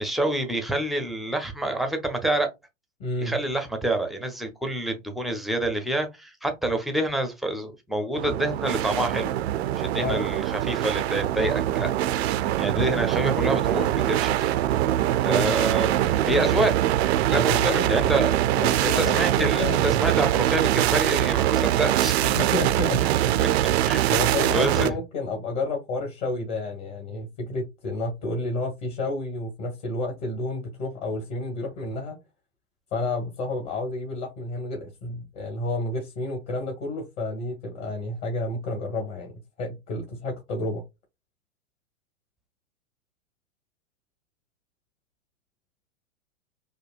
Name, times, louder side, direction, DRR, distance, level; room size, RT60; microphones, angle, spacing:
voice 1, 0.0-2.5 3.2-9.3 9.8-11.9 12.6-14.5 15.2-16.7 17.3-18.4 18.8-22.1 23.4-24.2 24.5-24.9, right 1 dB, ahead, 0.5 m, -27 dB
voice 2, 3.0-3.4 9.9-10.3 15.3-15.5 17.3-18.2 18.5-20.1 22.2-23.0 24.1-32.2 32.9-39.3 39.6-40.8, left 2 dB, 40° left, 1.5 m, -30 dB
sound 1, 8.2-24.9, right 12 dB, 55° right, 0.5 m, -23 dB
5.0 x 2.1 x 2.4 m
hypercardioid pair, 110°, 38 cm